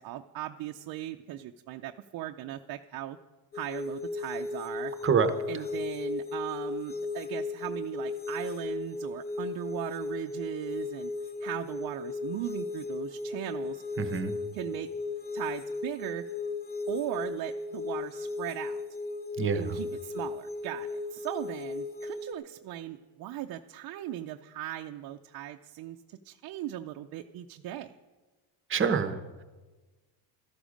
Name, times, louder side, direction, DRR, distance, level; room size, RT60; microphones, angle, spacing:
voice 1, 0.0-3.2 3.5-4.9 5.5-11.1 11.4-13.8 14.5-14.9 15.3-16.2 16.9-18.8 19.5-27.9, right 13 dB, 50° right, 4 dB, 0.5 m, -38 dB
sound 1, 3.5-22.3, left 3 dB, 20° left, 0.7 m, -36 dB
voice 2, 5.0-5.6 14.0-14.4 19.4-19.8 28.7-29.4, right 6 dB, 25° right, 10 dB, 0.8 m, -27 dB
13.5 x 12.0 x 5.1 m, 1.3 s
cardioid pair, 140°, 48 cm